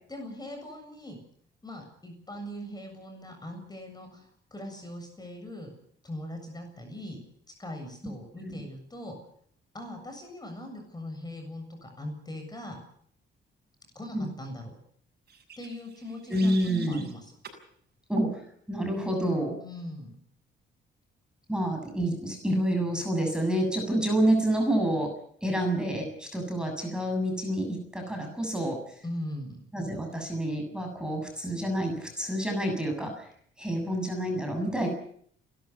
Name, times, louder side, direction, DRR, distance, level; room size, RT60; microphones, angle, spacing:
voice 1, 0.1-1.2 1.6-5.7 6.0-7.2 7.6-9.2 9.7-12.8 13.9-14.8 15.6-17.2 19.6-20.1 29.0-29.7, left 1 dB, 20° left, 4 dB, 7.5 m, -40 dB
sound 1, 15.3-17.1 17.4-17.6 18.2-18.4, right 6 dB, 55° right, 6.4 m, -45 dB
voice 2, 16.3-17.1 18.1-18.4 18.7-19.6 21.5-25.1 25.4-28.8 29.7-33.3 33.6-34.9, right 1 dB, 5° right, 3 dB, 7.2 m, -28 dB
30.0 x 13.0 x 8.4 m, 0.65 s
cardioid pair, 90°, 20 cm